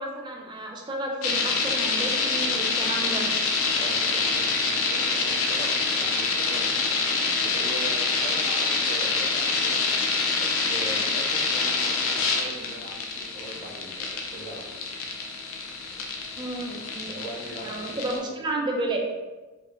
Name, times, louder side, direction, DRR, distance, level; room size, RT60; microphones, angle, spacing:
voice 1, 0.0-3.3 16.4-17.2 17.6-19.0, right 2 dB, 20° right, 0 dB, 0.3 m, -31 dB
sound 1, 1.2-18.2, left 4 dB, 70° left, 0.4 m, -26 dB
voice 2, 3.7-9.8 10.3-14.8 17.1-18.3, right 1 dB, 35° left, -8 dB, 0.7 m, -40 dB
3.0 x 2.0 x 2.4 m, 1.2 s
head